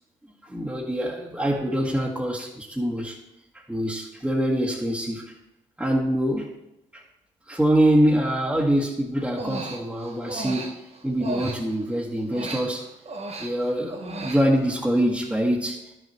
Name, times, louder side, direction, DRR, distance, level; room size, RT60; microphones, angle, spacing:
voice 1, 0.4-3.2 3.7-5.2 5.8-6.5 6.9-7.0 7.5-10.7 11.0-12.8 13.4-15.8, right 1 dB, 5° right, -5 dB, 1.7 m, -24 dB
Human voice, 9.2-11.9 12.3-14.8, right 2 dB, 45° right, 1.3 m, -35 dB
12.0 x 6.3 x 3.0 m, 0.89 s
hypercardioid pair, 40°, 14 cm